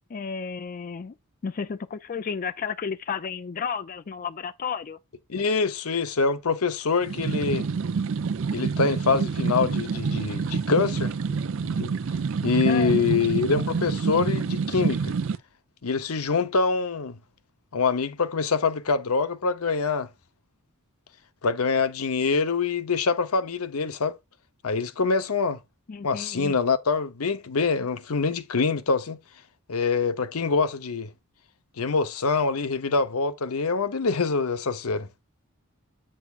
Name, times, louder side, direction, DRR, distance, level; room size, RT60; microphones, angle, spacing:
voice 1, 0.1-1.1 1.4-5.0 12.7-13.0 25.9-26.6, left 6 dB, 40° left, 0.3 m, -32 dB
voice 2, 5.3-7.7 8.5-11.9 12.4-15.1 15.8-17.2 17.7-20.1 21.4-24.1 24.6-25.6 26.0-29.2 29.7-31.1 31.8-35.1, left 4 dB, 80° left, 0.8 m, -25 dB
sound 1, 7.0-15.4, right 5 dB, 60° right, 0.4 m, -27 dB
8.1 x 6.5 x 2.4 m
head